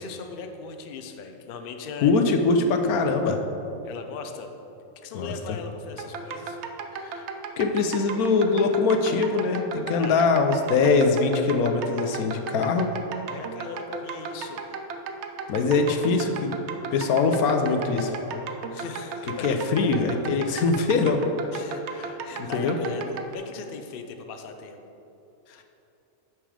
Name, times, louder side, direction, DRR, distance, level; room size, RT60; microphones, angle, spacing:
voice 1, 0.0-2.3 3.8-4.5 5.0-6.6 9.8-10.3 12.6-12.7 13.3-14.8 18.7-19.6 20.6-20.8 21.5-24.8, left 5 dB, 50° left, 6 dB, 0.7 m, -39 dB
voice 2, 2.0-3.4 5.1-5.6 7.0-7.3 7.6-12.9 15.5-16.6 16.9-18.1 19.4-21.2 21.9-22.8, left 4 dB, 85° left, 5 dB, 1.2 m, -23 dB
sound 1, 6.0-23.3, right 5 dB, 60° right, 0.8 m, -35 dB
9.0 x 6.2 x 4.9 m, 3.0 s
omnidirectional pair, 1.5 m